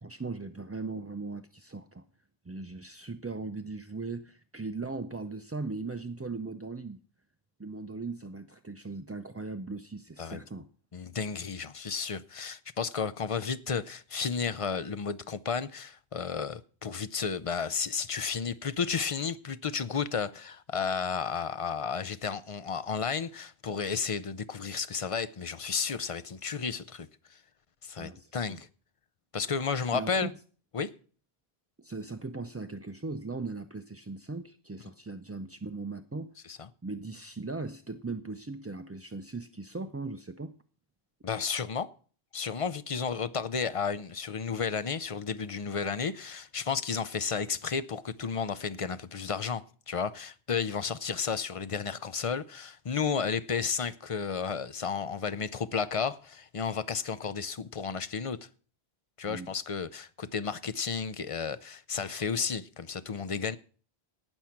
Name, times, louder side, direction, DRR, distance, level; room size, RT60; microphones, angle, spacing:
voice 1, 0.0-2.1 2.4-7.0 7.6-10.7 28.0-28.5 29.9-30.3 31.8-36.3 36.8-40.6 59.3-59.5, right 3 dB, 25° right, 0.3 m, -38 dB
voice 2, 10.9-27.4 27.8-28.7 29.3-30.3 30.7-30.9 36.5-36.7 41.2-41.9 42.3-58.5 59.2-63.6, left 6 dB, 40° left, 0.6 m, -32 dB
18.0 x 6.3 x 5.8 m
omnidirectional pair, 1.1 m